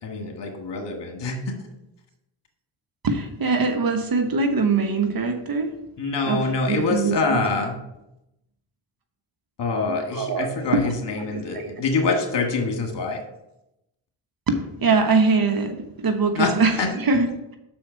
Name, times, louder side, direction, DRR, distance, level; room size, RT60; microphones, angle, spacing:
voice 1, 0.0-1.6 6.0-7.7 9.6-13.2 16.3-16.5 16.8-16.9, left 3 dB, 55° left, 3 dB, 1.7 m, -25 dB
voice 2, 3.0-5.7 6.2-7.5 10.1-10.9 11.2-11.8 14.5-17.6, right 4 dB, 45° right, 6 dB, 1.1 m, -23 dB
6.1 x 4.3 x 6.3 m, 0.88 s
supercardioid pair, 55°, 49 cm